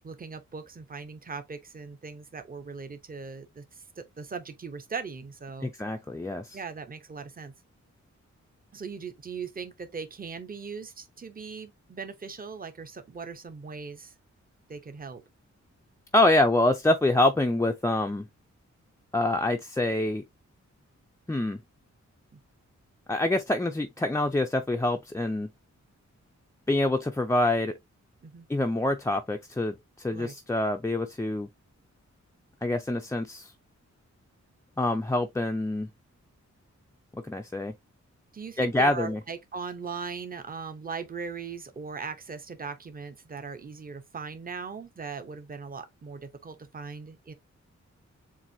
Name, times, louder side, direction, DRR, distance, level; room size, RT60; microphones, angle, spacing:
voice 1, 0.0-5.7 6.5-7.5 8.7-14.1 14.7-15.2 22.3-22.4 28.2-28.5 30.1-30.3 38.3-47.3, right 5 dB, 30° right, 0.7 m, -39 dB
voice 2, 5.6-6.6 16.1-18.3 19.1-20.2 21.3-21.6 23.1-25.5 26.7-27.7 28.5-31.5 32.6-33.5 34.8-35.9 37.1-37.7 38.6-39.2, left 2 dB, 10° left, 0.4 m, -26 dB
7.3 x 2.6 x 2.6 m
wide cardioid pair, 175°, 29 cm